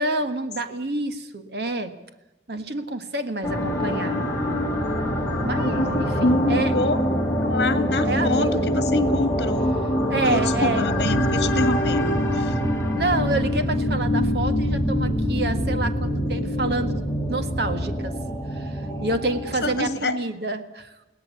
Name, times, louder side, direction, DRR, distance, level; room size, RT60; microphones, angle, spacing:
voice 1, 0.0-1.9 2.5-4.2 5.4-6.8 8.0-8.7 10.1-11.1 13.0-18.2 18.5-20.9, right 2 dB, 65° right, 8 dB, 1.7 m, -28 dB
sound 1, 3.4-19.9, equal, 15° left, 3.4 m, -24 dB
voice 2, 5.6-7.0 7.4-9.8 10.2-12.6 19.6-20.2, left 2 dB, 70° left, 11 dB, 1.8 m, -26 dB
22.5 x 17.5 x 8.4 m, 0.97 s
head